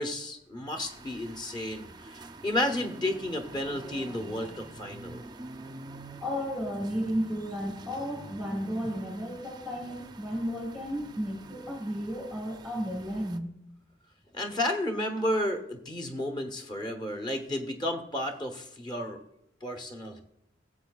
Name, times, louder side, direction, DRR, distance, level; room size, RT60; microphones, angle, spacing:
voice 1, 0.0-5.2 14.3-19.2 19.6-20.2, left 1 dB, 25° left, 5 dB, 0.9 m, -32 dB
sound 1, 0.8-13.4, right 2 dB, 20° right, 0.4 m, -47 dB
voice 2, 6.2-13.5, equal, 5° left, 0 dB, 1.3 m, -33 dB
17.0 x 7.4 x 2.3 m, 0.76 s
head